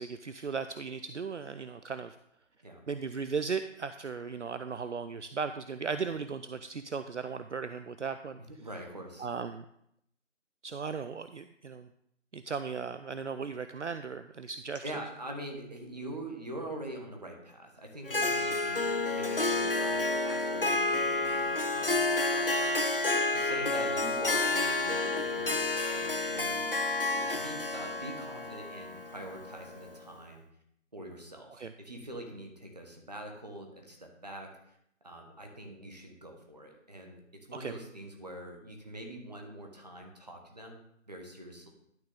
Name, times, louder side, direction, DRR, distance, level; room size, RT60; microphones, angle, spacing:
voice 1, 0.0-2.2 2.9-8.4 9.2-9.6 10.6-11.9 12.3-14.8 31.6-31.7 37.6-37.7, right 5 dB, 65° right, 11 dB, 0.5 m, -36 dB
voice 2, 8.6-9.3 14.8-23.0 23.3-26.7 27.0-30.4 30.9-34.8 35.0-37.2 37.5-41.7, right 1 dB, 35° right, 2 dB, 1.5 m, -44 dB
Harp, 18.1-29.9, left 2 dB, 45° left, 0.6 m, -30 dB
11.5 x 6.2 x 3.6 m, 0.73 s
figure-of-eight pair, 165°, 38 cm